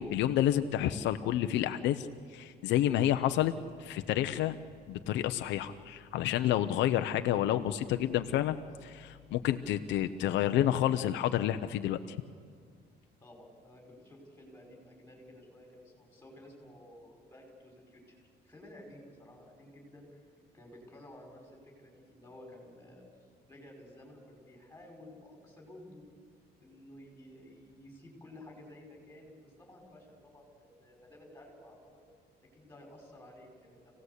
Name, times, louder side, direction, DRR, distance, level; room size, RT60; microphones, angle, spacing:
voice 1, 0.0-2.1 2.3-3.5 3.8-4.6 4.9-8.6 8.8-12.0, left 12 dB, 80° left, 9 dB, 0.8 m, -29 dB
voice 2, 13.2-18.2 18.4-26.0 26.6-32.0 32.5-33.9, left 1 dB, 10° left, 1 dB, 5.3 m, -53 dB
27.0 x 17.5 x 8.2 m, 2.2 s
cardioid pair, 160°, 18 cm